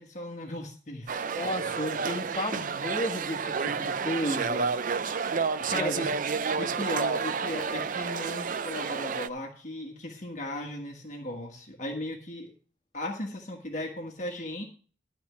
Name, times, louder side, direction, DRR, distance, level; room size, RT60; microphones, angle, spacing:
voice 1, 0.0-1.2 4.9-5.0 5.6-6.1 6.6-12.5 12.9-14.6, left 1 dB, 40° left, 1.5 m, -36 dB
sound 1, 1.1-9.3, right 5 dB, 45° right, 0.4 m, -30 dB
voice 2, 1.4-5.0 5.7-6.1, equal, 25° left, 1.8 m, -33 dB
12.5 x 4.5 x 8.3 m
head